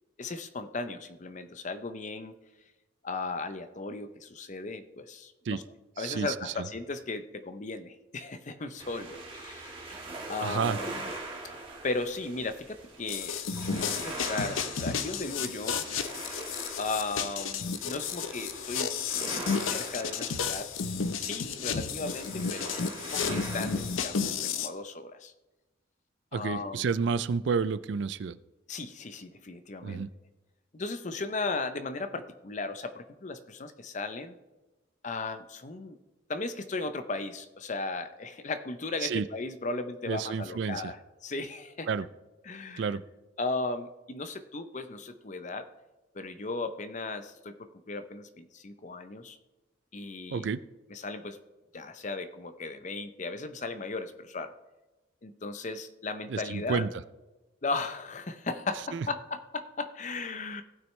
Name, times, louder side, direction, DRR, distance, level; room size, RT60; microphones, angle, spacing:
voice 1, 0.2-2.3 3.0-5.6 6.0-10.0 10.3-11.1 11.8-13.4 13.7-15.8 16.8-18.9 19.5-20.7 21.1-22.8 23.1-25.3 26.3-26.9 28.7-30.0 30.7-34.3 35.0-36.0 36.3-41.9 42.4-42.9 43.4-45.7 46.1-49.4 49.9-50.5 50.9-51.4 51.7-54.5 55.2-56.9 57.6-60.6, left 3 dB, 40° left, 10 dB, 0.6 m, -36 dB
voice 2, 6.0-6.5 10.4-10.8 26.3-28.4 29.8-30.1 39.0-39.2 40.1-40.9 41.9-42.1 42.8-43.0 50.3-50.6 56.3-56.9 58.9-59.1, right 5 dB, 65° right, 16 dB, 0.4 m, -30 dB
sound 1, 8.8-24.1, right 2 dB, 25° right, 1.6 m, -43 dB
sound 2, 13.1-24.7, left 6 dB, 85° left, 0.7 m, -32 dB
17.0 x 6.1 x 3.2 m, 1.1 s
head